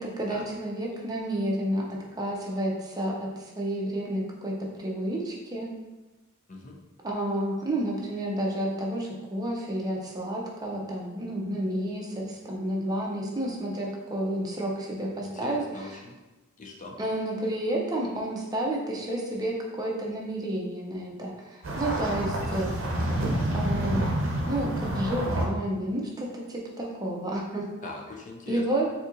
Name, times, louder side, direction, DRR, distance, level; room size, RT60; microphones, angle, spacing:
voice 1, 0.0-5.7 7.0-16.0 17.0-22.7 23.5-24.2 24.5-27.6 28.5-29.1, right 1 dB, 20° right, -2 dB, 0.5 m, -30 dB
voice 2, 15.2-16.2 16.6-17.0 27.8-28.6, left 2 dB, 40° left, 0 dB, 0.5 m, -41 dB
sound 1, 21.6-25.4, right 1 dB, 65° right, 0.7 m, -28 dB
4.0 x 2.8 x 2.5 m, 1.1 s
head